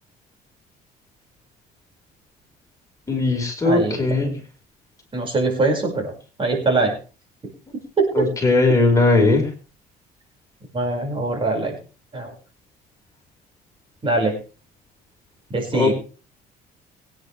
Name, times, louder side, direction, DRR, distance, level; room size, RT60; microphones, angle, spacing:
voice 1, 3.1-4.3 8.2-9.5 15.7-15.9, left 3 dB, 20° left, 1 dB, 5.3 m, -18 dB
voice 2, 3.6-4.4 5.1-6.1 6.4-6.9 8.0-8.2 10.7-11.7 12.1-12.3 14.0-14.4 15.5-15.9, right 3 dB, 30° right, 1 dB, 6.0 m, -22 dB
23.0 x 10.0 x 3.5 m, 0.36 s
cardioid pair, 110°, 17 cm